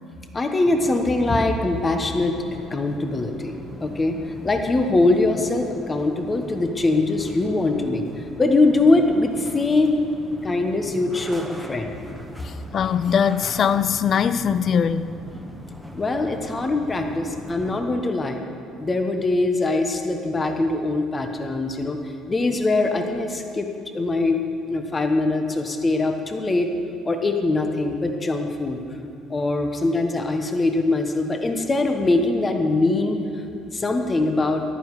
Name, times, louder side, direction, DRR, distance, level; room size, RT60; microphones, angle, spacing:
voice 1, 0.3-2.4 2.7-4.2 4.4-8.0 8.4-10.0 10.4-12.0 15.9-18.4 18.8-22.0 22.3-23.7 23.9-26.7 27.0-28.8 29.3-33.2 33.7-34.6, left 2 dB, 25° left, 1.3 m, -22 dB
sound 1, 0.6-17.8, equal, 5° left, 1.4 m, -40 dB
voice 2, 12.7-15.1, left 7 dB, 50° left, 0.5 m, -21 dB
14.5 x 10.5 x 4.9 m
supercardioid pair, 90°, 0 cm